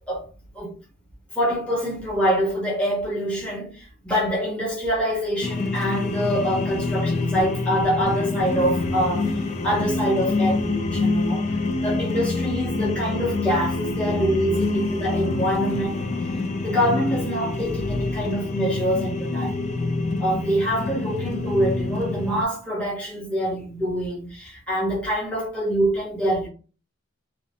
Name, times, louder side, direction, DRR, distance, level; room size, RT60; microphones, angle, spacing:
voice 1, 1.3-9.4 9.6-11.4 11.8-16.0 16.6-19.5 20.2-26.5, equal, 5° left, 0.8 m, -25 dB
sound 1, 5.4-22.5, left 3 dB, 35° left, 0.3 m, -26 dB
2.8 x 2.0 x 2.6 m
head